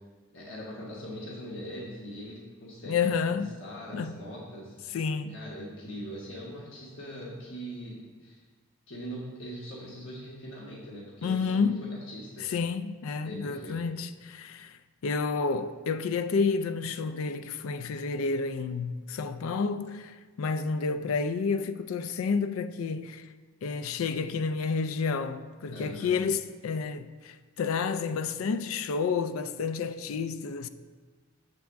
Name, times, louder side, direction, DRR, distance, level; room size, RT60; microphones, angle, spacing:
voice 1, 0.3-5.0 5.3-8.4 8.9-12.5 13.2-13.8 25.7-26.2, equal, 65° left, 1.3 m, -41 dB
voice 2, 2.9-3.5 3.9-4.2 4.9-5.4 11.2-11.9 12.4-14.8 15.0-23.3 23.6-30.7, left 5 dB, 85° left, 0.4 m, -30 dB
7.5 x 3.5 x 6.2 m
head